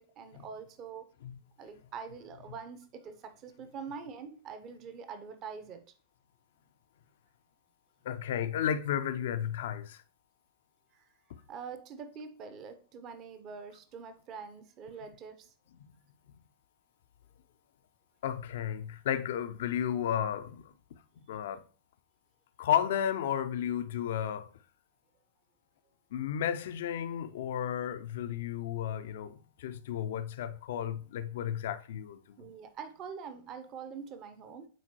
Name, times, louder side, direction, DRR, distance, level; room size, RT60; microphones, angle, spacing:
voice 1, 0.0-1.1 1.6-5.8 10.9-11.1 11.5-15.5 32.4-34.7, right 6 dB, 35° right, 0.9 m, -44 dB
voice 2, 8.0-10.0 15.8-15.9 18.2-20.7 21.3-21.6 22.6-24.5 26.1-32.2, left 9 dB, 55° left, 0.5 m, -33 dB
9.2 x 4.3 x 2.9 m
figure-of-eight pair, 90°, 0 cm